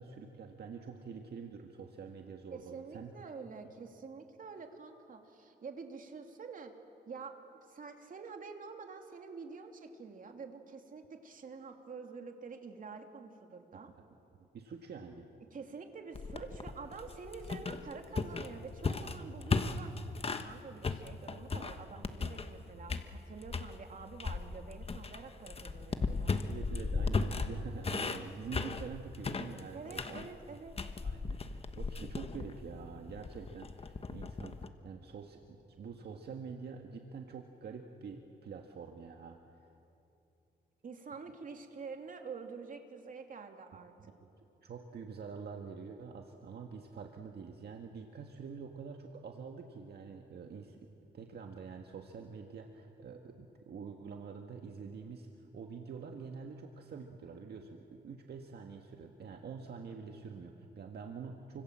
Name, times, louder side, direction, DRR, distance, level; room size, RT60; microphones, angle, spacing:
voice 1, 0.0-3.1 13.7-13.8 14.5-15.3 19.4-19.5 26.5-30.2 31.0-39.7 44.0-44.1 44.6-61.6, right 5 dB, 65° right, 3 dB, 1.8 m, -46 dB
voice 2, 2.5-6.7 7.1-7.4 7.7-13.9 15.5-19.9 20.2-26.4 29.7-30.7 40.8-44.1, right 5 dB, 50° right, 4 dB, 2.8 m, -47 dB
sound 1, 16.1-20.5 20.8-22.6 22.9-23.7 24.2-34.7, left 4 dB, 30° left, 1.3 m, -36 dB
29.5 x 25.5 x 7.6 m, 2.8 s
cardioid pair, 100°, 18 cm